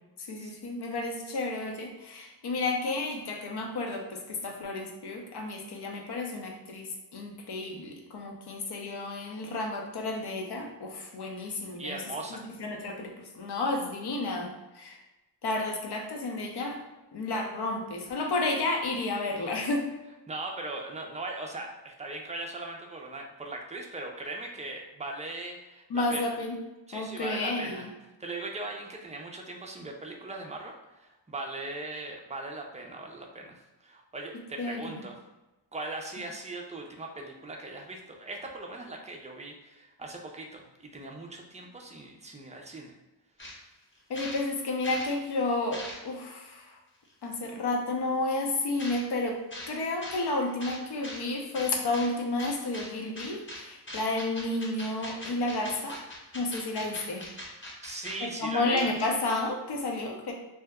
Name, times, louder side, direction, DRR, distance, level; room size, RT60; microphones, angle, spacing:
voice 1, 0.3-12.0 12.3-15.0 15.4-16.8 17.1-19.9 25.9-26.6 26.9-27.8 34.6-34.8 44.1-46.8 47.2-49.4 49.7-56.0 56.3-57.3 58.2-60.3, left 2 dB, 60° left, 2 dB, 0.7 m, -31 dB
voice 2, 11.8-12.4 20.3-26.4 26.9-27.9 28.2-35.1 35.7-42.9 57.8-58.9, right 2 dB, 15° right, 1 dB, 0.4 m, -39 dB
sound 1, 43.4-43.5 43.9-45.1 45.5-46.2 47.0-47.1 48.8-49.0 49.5-49.7 50.0-50.2 50.6-51.2 51.5-52.1 52.4-52.9 53.1-53.6 53.9-58.1 58.4-58.5 58.8-59.2, left 1 dB, 25° left, 0.9 m, -41 dB
2.7 x 2.1 x 3.4 m, 1.0 s
cardioid pair, 85°, 46 cm